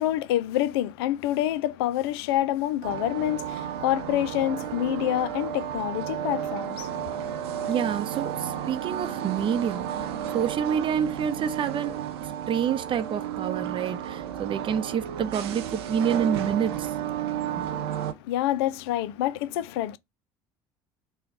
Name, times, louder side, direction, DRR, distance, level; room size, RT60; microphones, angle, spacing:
voice 1, 0.0-7.2 18.0-20.0, left 13 dB, 80° left, 0.4 m, -27 dB
sound 1, 2.8-18.1, right 10 dB, 85° right, 0.5 m, -32 dB
voice 2, 7.7-9.9 10.3-12.0 12.5-16.9 17.6-17.7, right 8 dB, 40° right, 0.6 m, -28 dB
3.3 x 2.2 x 3.7 m
hypercardioid pair, 80°, 13 cm